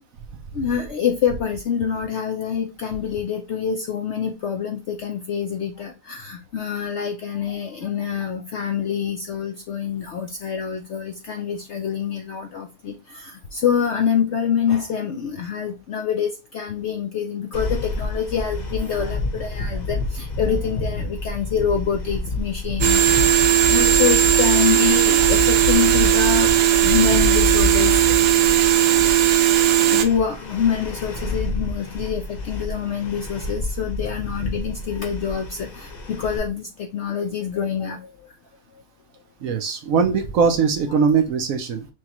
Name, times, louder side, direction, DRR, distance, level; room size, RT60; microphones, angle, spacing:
voice 1, 0.5-26.5 26.8-28.0 29.9-38.0 40.9-41.0, left 7 dB, 65° left, 0.7 m, -26 dB
sound 1, 17.5-36.4, left 2 dB, 35° left, 0.8 m, -29 dB
sound 2, 22.8-30.1, right 11 dB, 90° right, 1.2 m, -17 dB
voice 2, 39.4-41.9, right 5 dB, 65° right, 1.0 m, -20 dB
6.3 x 2.3 x 2.9 m
omnidirectional pair, 1.7 m